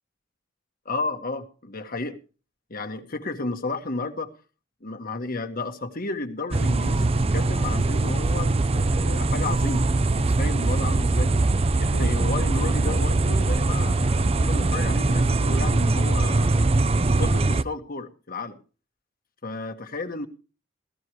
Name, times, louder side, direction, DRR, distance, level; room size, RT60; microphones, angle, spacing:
voice 1, 0.8-2.2 2.7-4.3 4.8-11.3 11.8-16.7 17.2-18.6 19.4-20.3, left 3 dB, 50° left, 1.7 m, -32 dB
sound 1, 6.5-17.6, right 2 dB, 30° right, 0.6 m, -22 dB
16.0 x 14.5 x 3.1 m
head